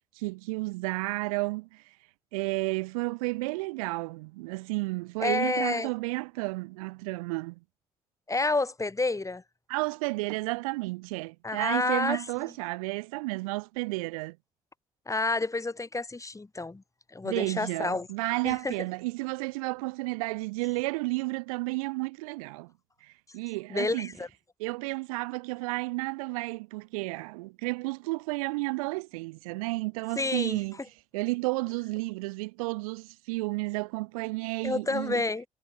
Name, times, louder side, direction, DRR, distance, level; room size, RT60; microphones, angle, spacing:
voice 1, 0.2-1.8 2.3-7.6 9.7-14.4 17.2-22.7 23.0-24.1 24.6-30.8 31.1-35.2, right 24 dB, 80° right, 0.8 m, -32 dB
voice 2, 5.2-5.9 8.3-9.4 11.4-12.2 15.1-16.8 17.1-18.1 18.4-18.7 23.7-24.3 30.2-30.6 34.6-35.4, left 3 dB, 15° left, 1.1 m, -29 dB
figure-of-eight pair, 40°, 18 cm